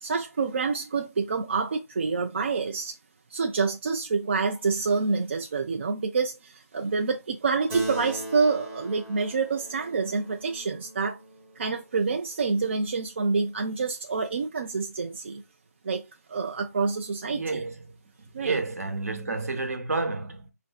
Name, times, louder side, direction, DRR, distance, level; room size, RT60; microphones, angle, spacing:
voice 1, 0.0-3.0 3.3-11.2 11.6-15.4 15.8-16.0 16.3-17.6 18.3-18.6, right 4 dB, 45° right, 0.4 m, -27 dB
Keyboard (musical), 7.7-12.6, right 1 dB, 10° right, 0.7 m, -40 dB
voice 2, 17.2-17.9 18.4-20.5, right 3 dB, 65° right, 0.9 m, -30 dB
5.4 x 2.5 x 2.2 m
figure-of-eight pair, 155°, 9 cm